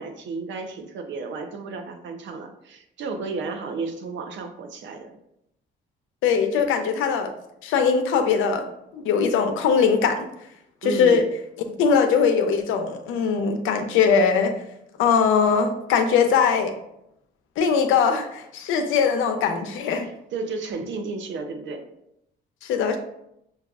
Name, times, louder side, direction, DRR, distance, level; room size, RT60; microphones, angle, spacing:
voice 1, 0.0-5.1 10.8-11.3 20.0-21.8, right 4 dB, 70° right, 5 dB, 0.6 m, -33 dB
voice 2, 6.2-7.3 7.6-8.6 8.9-10.2 10.8-11.2 11.8-14.5 15.0-16.7 17.6-20.1 22.6-23.0, left 6 dB, 90° left, 6 dB, 0.5 m, -21 dB
6.2 x 2.3 x 2.3 m, 0.80 s
cardioid pair, 90°, 20 cm